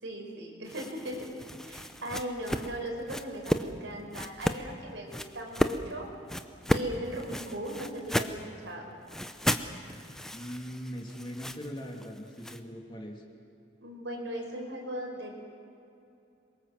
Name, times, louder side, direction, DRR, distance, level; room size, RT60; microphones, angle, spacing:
voice 1, 0.0-6.1 6.7-8.9 13.8-15.5, right 1 dB, 85° right, 1 dB, 5.4 m, -38 dB
sound 1, 0.6-3.7 4.1-4.6 5.1-5.8 6.3-8.4 9.1-12.6, equal, 5° left, 0.8 m, -33 dB
voice 2, 10.3-13.2, equal, 25° left, 1 dB, 2.7 m, -40 dB
26.5 x 23.0 x 7.7 m, 2.7 s
head